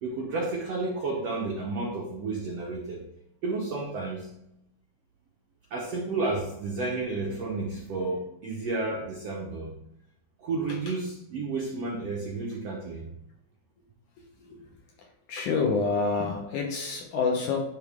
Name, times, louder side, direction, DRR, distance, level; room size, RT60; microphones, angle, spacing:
voice 1, 0.0-3.0 3.4-4.3 5.7-9.7 10.4-13.1, right 3 dB, 85° right, -1 dB, 1.3 m, -31 dB
voice 2, 15.3-17.6, left 4 dB, 70° left, 1 dB, 2.0 m, -27 dB
10.5 x 3.8 x 3.6 m, 0.85 s
omnidirectional pair, 4.3 m